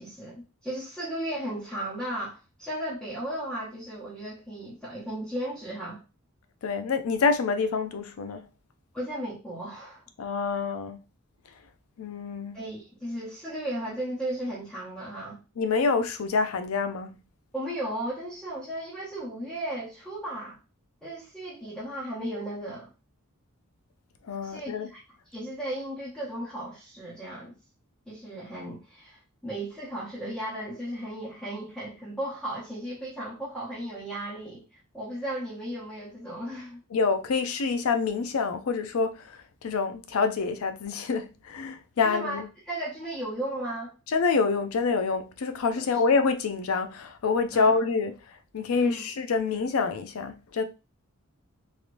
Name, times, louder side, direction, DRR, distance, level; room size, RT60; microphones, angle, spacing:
voice 1, 0.0-6.0 8.9-10.0 12.5-15.4 17.5-20.6 21.0-22.9 24.4-25.0 25.3-27.5 28.1-34.6 34.9-36.8 42.0-43.9 45.8-45.9 47.5-47.8 48.7-49.0, right 1 dB, ahead, 0.8 m, -35 dB
voice 2, 6.6-8.4 10.2-11.0 12.0-12.6 15.6-17.1 24.3-24.9 36.9-42.5 44.1-50.6, left 4 dB, 70° left, 0.4 m, -27 dB
3.2 x 2.8 x 2.5 m
head